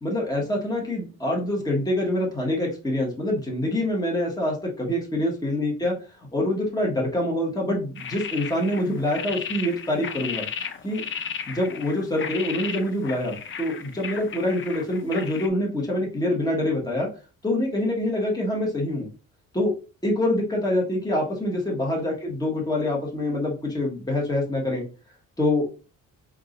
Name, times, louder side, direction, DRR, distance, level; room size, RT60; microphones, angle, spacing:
voice 1, 0.0-5.9 6.3-10.5 10.8-11.0 11.5-17.1 17.4-19.1 19.5-19.7 20.0-24.8 25.4-25.7, left 1 dB, 10° left, -2 dB, 1.5 m, -25 dB
sound 1, 8.0-15.5, left 7 dB, 40° left, 0.6 m, -35 dB
3.9 x 3.7 x 2.6 m, 0.34 s
cardioid pair, 90°, 30 cm